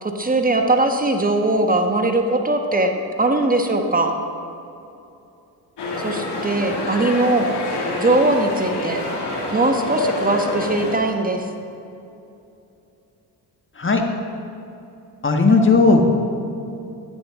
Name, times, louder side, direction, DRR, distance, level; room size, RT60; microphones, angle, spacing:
voice 1, 0.0-2.9 3.2-4.2 6.0-7.5 8.0-9.0 9.5-11.5, right 2 dB, 20° right, 5 dB, 1.3 m, -20 dB
sound 1, 5.8-11.0, left 2 dB, 65° left, 2.2 m, -27 dB
voice 2, 15.2-16.0, left 3 dB, 25° left, 3 dB, 1.5 m, -15 dB
11.5 x 9.2 x 3.8 m, 2.8 s
supercardioid pair, 55°, 44 cm